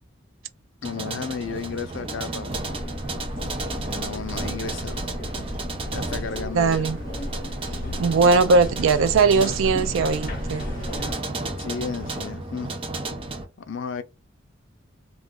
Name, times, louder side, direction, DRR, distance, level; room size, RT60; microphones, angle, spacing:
voice 1, 0.8-2.6 3.8-5.0 5.9-6.8 11.6-12.7 13.7-14.0, left 5 dB, 75° left, 0.4 m, -33 dB
sound 1, 0.8-13.5, right 2 dB, 25° right, 0.5 m, -33 dB
sound 2, 2.5-11.1, left 1 dB, 45° left, 0.8 m, -34 dB
sound 3, 2.5-12.4, equal, 45° right, 1.2 m, -43 dB
voice 2, 6.5-7.0 8.0-10.7, right 4 dB, 85° right, 0.4 m, -19 dB
2.4 x 2.3 x 3.4 m
head